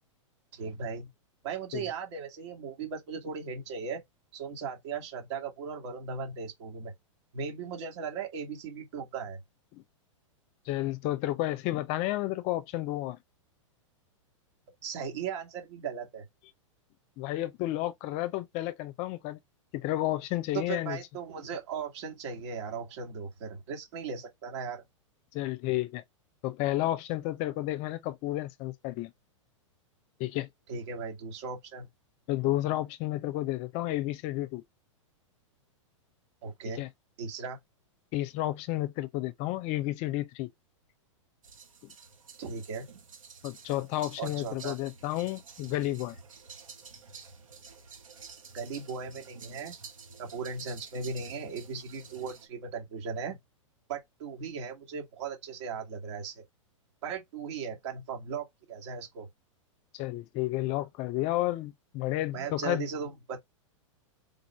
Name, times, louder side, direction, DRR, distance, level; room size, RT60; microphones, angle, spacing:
voice 1, 0.5-1.1 1.4-4.0 4.3-6.9 7.3-9.4 14.8-16.3 20.5-24.8 30.7-31.9 36.4-36.8 37.2-37.6 42.4-42.9 44.2-44.8 48.5-49.7 50.2-53.4 53.9-56.4 57.0-59.3 62.3-63.4, right 5 dB, 60° right, 1.8 m, -37 dB
voice 2, 10.7-13.2 17.2-19.4 19.7-21.0 25.3-26.0 26.4-29.1 30.2-30.5 32.3-34.6 36.8-36.9 38.1-40.5 41.8-41.9 43.4-46.2 59.9-62.9, left 15 dB, 40° left, 0.5 m, -31 dB
sound 1, 41.4-52.5, right 5 dB, 85° right, 1.0 m, -50 dB
3.8 x 2.5 x 4.3 m
hypercardioid pair, 115°, 17 cm